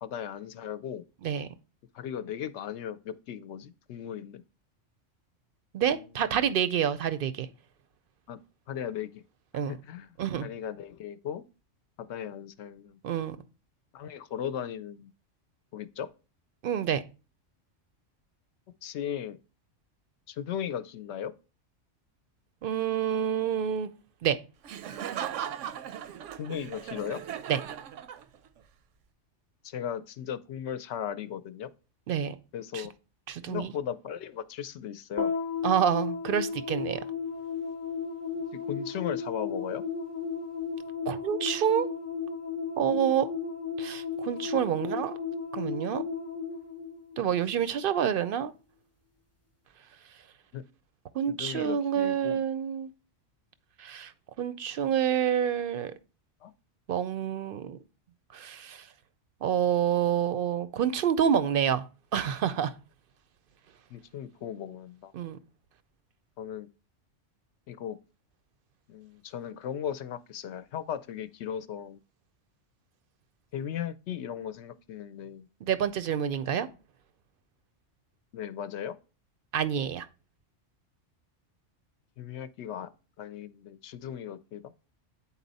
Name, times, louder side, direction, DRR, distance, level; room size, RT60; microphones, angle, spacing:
voice 1, 0.0-1.0 1.9-4.4 5.9-6.2 8.3-8.4 8.7-9.2 9.7-10.1 10.4-11.4 12.0-13.0 13.9-15.1 15.7-16.1 18.8-19.4 20.3-21.3 26.4-27.2 29.6-31.7 32.5-32.9 33.5-35.3 38.5-39.8 50.5-50.6 51.3-52.4 56.4-56.5 63.9-65.1 66.4-66.7 67.7-68.0 68.9-72.0 73.5-75.5 78.3-79.0 82.2-82.9 83.2-84.7, left 9 dB, 70° left, 0.8 m, -37 dB
voice 2, 5.7-7.5 9.5-9.8 10.2-10.5 13.0-13.4 16.6-17.0 22.6-23.9 24.2-24.4 27.5-27.6 32.1-32.4 32.7-32.9 33.3-33.7 35.6-37.0 41.1-41.9 42.8-43.3 43.8-45.2 45.5-46.0 47.2-48.5 51.1-52.9 53.8-54.1 54.4-55.9 56.9-57.8 58.3-58.9 59.4-61.8 62.1-62.7 65.1-65.4 75.7-76.7 79.5-80.1, right 9 dB, 60° right, 0.6 m, -28 dB
Laughter, 24.6-28.6, right 9 dB, 85° right, 0.9 m, -38 dB
sound 1, 35.2-47.7, left 6 dB, 15° left, 0.6 m, -34 dB
8.9 x 4.2 x 4.0 m
omnidirectional pair, 1.3 m